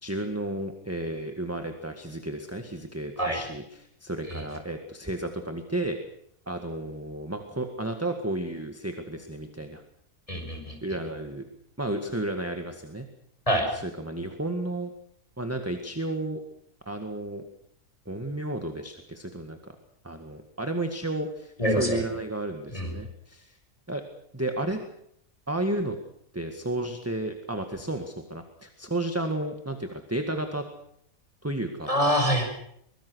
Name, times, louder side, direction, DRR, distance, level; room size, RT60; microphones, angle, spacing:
voice 1, 0.0-6.0 6.5-9.8 10.8-11.5 11.8-13.1 13.7-14.9 15.4-16.4 16.9-17.4 18.1-19.7 20.0-23.6 23.9-24.0 24.3-24.8 25.5-26.0 26.3-30.7 31.4-31.9, right 1 dB, 10° right, 5 dB, 1.8 m, -32 dB
voice 2, 10.3-10.8 13.5-13.7 21.6-22.0 22.7-22.9 31.9-32.4, equal, 25° left, 3 dB, 6.1 m, -25 dB
23.5 x 22.0 x 6.4 m, 0.70 s
omnidirectional pair, 1.5 m